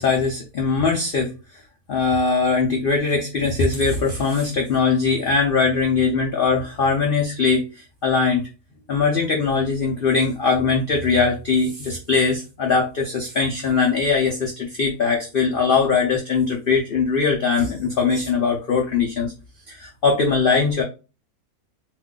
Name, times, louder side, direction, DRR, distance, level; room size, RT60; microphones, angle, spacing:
voice 1, 0.0-1.3 1.9-7.6 8.0-8.5 8.9-19.3 19.7-20.8, left 4 dB, 75° left, 0 dB, 0.5 m, -21 dB
2.6 x 2.2 x 3.6 m, 0.31 s
omnidirectional pair, 1.6 m